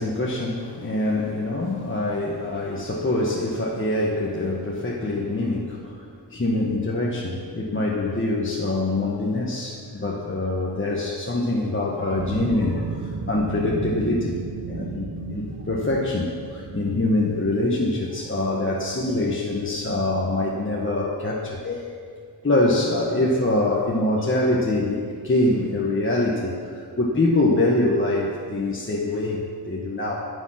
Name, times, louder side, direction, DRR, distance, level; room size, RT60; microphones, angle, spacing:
voice 1, 0.0-14.4 14.6-21.9 22.4-30.3, left 2 dB, 30° left, -3 dB, 1.5 m, -24 dB
sound 1, 12.1-17.7, right 4 dB, 70° right, 1.1 m, -33 dB
21.5 x 7.3 x 5.9 m, 2.2 s
wide cardioid pair, 85°, 40 cm